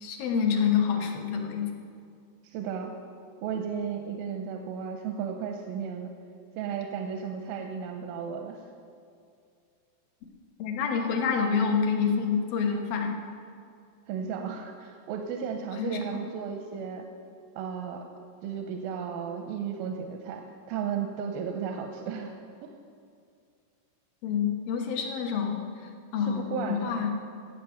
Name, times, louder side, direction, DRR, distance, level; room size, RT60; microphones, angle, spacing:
voice 1, 0.0-1.7 10.6-13.2 15.8-16.0 24.2-25.6 26.1-27.1, left 6 dB, 75° left, 2 dB, 2.8 m, -27 dB
voice 2, 2.4-2.9 3.4-6.1 6.6-8.6 14.1-17.1 17.6-18.0 18.4-22.7 26.2-27.1, right 7 dB, 90° right, 3 dB, 2.5 m, -34 dB
14.5 x 7.9 x 5.6 m, 2.4 s
omnidirectional pair, 4.1 m